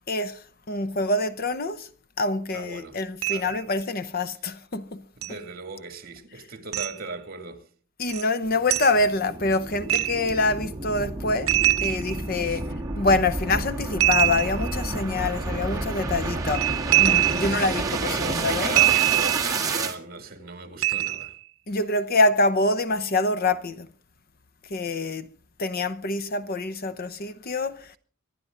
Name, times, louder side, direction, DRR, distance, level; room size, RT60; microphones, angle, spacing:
voice 1, 0.1-1.9 2.2-5.0 8.0-11.5 11.8-18.8 21.7-23.9 24.7-25.3 25.6-28.0, left 2 dB, 45° left, 0.7 m, -26 dB
voice 2, 2.5-3.0 3.3-3.5 5.2-7.7 12.4-12.8 17.4-21.3, right 3 dB, 45° right, 2.3 m, -38 dB
sound 1, 3.2-3.6 5.2-5.3 6.7-7.0 8.1-8.3 8.7-9.0 9.9-10.3 11.5-12.5 14.0-14.8 16.4-17.7 18.8-19.6 20.8-21.4, right 14 dB, 80° right, 0.7 m, -23 dB
sound 2, 8.4-19.9, right 3 dB, 15° right, 1.7 m, -30 dB
25.0 x 11.5 x 3.8 m
head